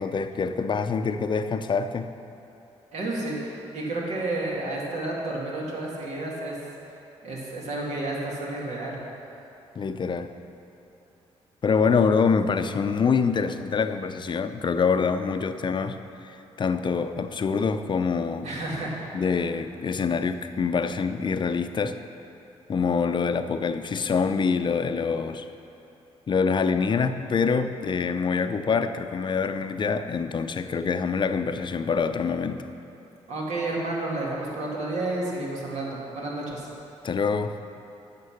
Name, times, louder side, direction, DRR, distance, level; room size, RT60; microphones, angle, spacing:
voice 1, 0.0-2.1 9.8-10.3 11.6-16.0 16.2-18.5 19.1-22.0 22.7-25.5 26.3-32.6 37.0-37.5, left 5 dB, 40° left, 9 dB, 0.5 m, -25 dB
voice 2, 2.9-6.6 7.2-9.0 18.4-18.9 33.3-36.7, right 2 dB, 75° right, -3 dB, 2.2 m, -31 dB
9.6 x 6.7 x 6.5 m, 2.9 s
cardioid pair, 75°, 12 cm